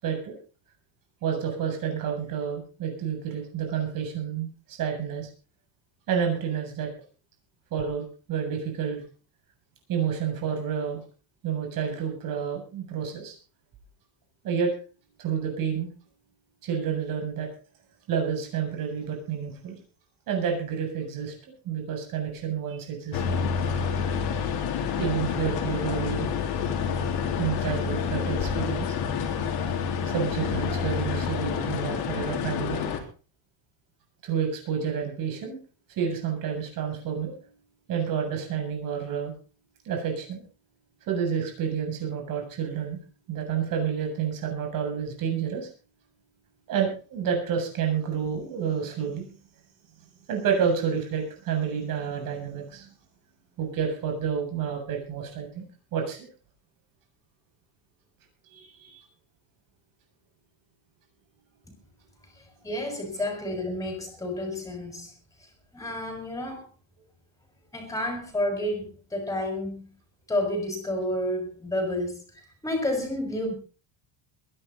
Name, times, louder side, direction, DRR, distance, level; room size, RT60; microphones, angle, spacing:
voice 1, 0.0-0.3 1.2-5.3 6.1-6.9 7.7-9.0 9.9-11.0 11.4-13.3 14.4-14.7 15.2-15.9 16.6-17.5 18.1-19.8 20.3-21.3 21.6-23.4 25.0-26.3 27.4-29.0 30.0-32.8 34.2-35.6 35.9-37.3 37.9-39.3 39.8-40.4 41.1-43.0 43.3-45.7 46.7-49.3 50.3-52.9 53.6-56.3 58.5-59.0, right 7 dB, 45° right, 2 dB, 7.5 m, -29 dB
sound 1, 23.1-33.0, left 6 dB, 50° left, 3.7 m, -28 dB
voice 2, 62.6-65.1 65.4-66.6 67.7-69.9 70.3-73.5, left 1 dB, 5° left, 4 dB, 6.1 m, -30 dB
22.0 x 11.5 x 4.1 m, 0.37 s
cardioid pair, 175°, 46 cm